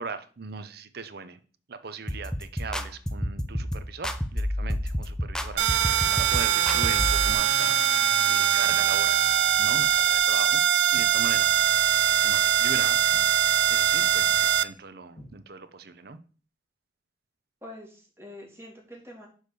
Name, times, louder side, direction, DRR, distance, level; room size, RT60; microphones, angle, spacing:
voice 1, 0.0-1.4 1.7-7.8 8.2-9.2 9.6-10.6 10.9-11.6 11.9-16.2, right 4 dB, 60° right, 12 dB, 0.8 m, -39 dB
sound 1, 2.1-7.3, equal, 5° left, 0.6 m, -30 dB
sound 2, 5.6-14.6, right 10 dB, 85° right, 0.4 m, -22 dB
Walk footsteps, 7.5-7.8 8.7-8.9 9.7-10.0 10.3-11.7 12.0-12.2 12.6-12.8 13.1-13.3 13.6-13.9 14.1-14.4 15.1-15.8, equal, 45° left, 3.5 m, -51 dB
voice 2, 17.6-19.3, left 1 dB, 15° right, -2 dB, 2.8 m, -45 dB
6.3 x 5.0 x 6.7 m, 0.39 s
head